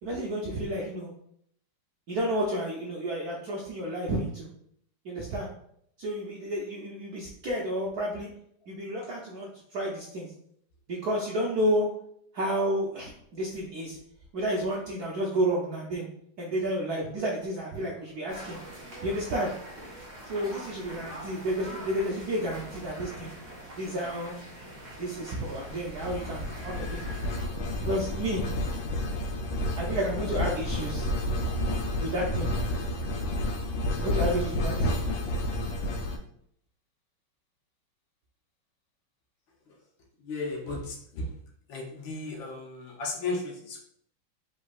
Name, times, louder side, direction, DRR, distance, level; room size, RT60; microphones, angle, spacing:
voice 1, 0.0-1.1 2.1-4.5 5.0-5.5 6.0-8.3 8.7-10.3 10.9-11.9 12.3-14.0 14.3-16.1 16.4-18.6 19.0-19.5 20.2-23.3 23.8-24.4 25.0-27.0 27.8-28.5 29.8-31.1 32.0-32.5 34.0-35.0, right 1 dB, 70° right, -2 dB, 0.9 m, -31 dB
sound 1, 18.3-27.5, right 1 dB, 40° right, 1.6 m, -44 dB
sound 2, 25.5-36.2, left 1 dB, 90° left, 1.6 m, -30 dB
voice 2, 40.2-41.3 41.7-43.8, left 3 dB, 70° left, 0 dB, 1.6 m, -35 dB
5.2 x 3.8 x 2.4 m, 0.68 s
omnidirectional pair, 2.4 m